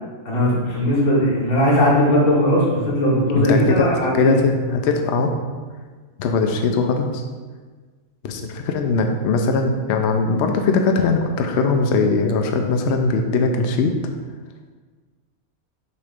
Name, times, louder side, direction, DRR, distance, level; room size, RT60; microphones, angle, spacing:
voice 1, 0.3-4.4, equal, 80° left, -6 dB, 2.1 m, -18 dB
voice 2, 3.3-3.9 4.1-5.3 6.2-7.2 8.2-13.9, left 4 dB, 65° left, 4 dB, 0.8 m, -20 dB
6.8 x 3.1 x 5.1 m, 1.4 s
omnidirectional pair, 1.5 m